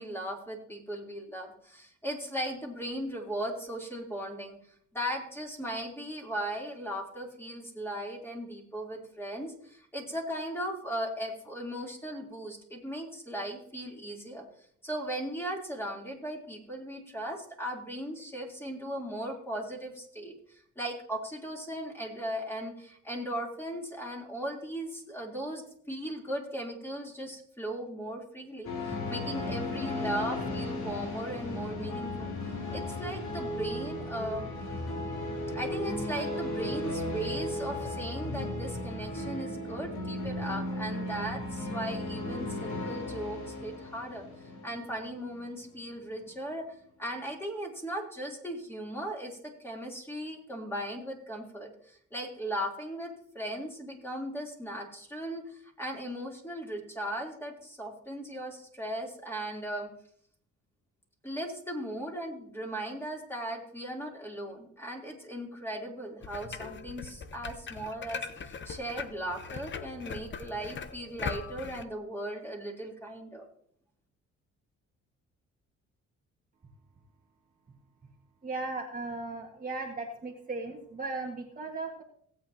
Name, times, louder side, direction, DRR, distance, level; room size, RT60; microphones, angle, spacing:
voice 1, 0.0-4.6 4.9-14.4 14.8-32.3 32.7-34.5 35.5-44.3 44.6-46.6 47.0-59.9 61.2-73.5, right 1 dB, 10° left, -1 dB, 3.3 m, -37 dB
sound 1, 28.6-45.5, left 1 dB, 70° left, 3.2 m, -35 dB
sound 2, 66.2-71.8, left 5 dB, 40° left, 0.9 m, -40 dB
voice 2, 78.4-82.0, right 3 dB, 30° right, 0 dB, 1.7 m, -37 dB
17.5 x 8.5 x 2.9 m, 0.64 s
cardioid pair, 90°, 30 cm